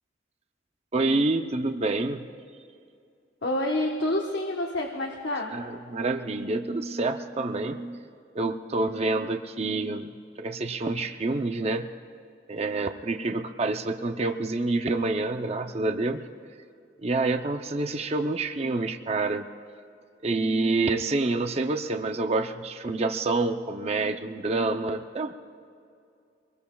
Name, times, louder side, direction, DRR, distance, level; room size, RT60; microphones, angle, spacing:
voice 1, 0.9-2.3 5.5-8.0 8.3-10.1 10.4-11.9 12.5-16.2 17.0-19.5 20.2-25.3, right 2 dB, 35° right, 6 dB, 0.6 m, -27 dB
voice 2, 3.4-5.6, left 1 dB, 75° left, 0 dB, 1.1 m, -28 dB
25.5 x 21.0 x 2.3 m, 2.4 s
head